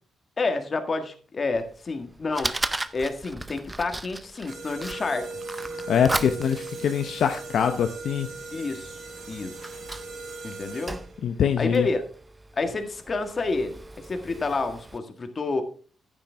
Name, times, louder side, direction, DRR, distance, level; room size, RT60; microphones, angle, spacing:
voice 1, 0.4-2.6 2.9-5.4 8.5-9.0 9.3-9.6 10.4-11.0 11.6-12.0 12.5-15.6, left 3 dB, 40° left, 7 dB, 1.6 m, -29 dB
Fire, 1.5-15.0, right 2 dB, 15° right, 0.6 m, -37 dB
sound 1, 4.5-11.2, right 3 dB, 80° right, 4.1 m, -38 dB
voice 2, 5.9-8.3 11.2-11.9, left 8 dB, 70° left, 7 dB, 0.7 m, -23 dB
10.0 x 8.9 x 3.4 m, 0.42 s
cardioid pair, 85°, 0 cm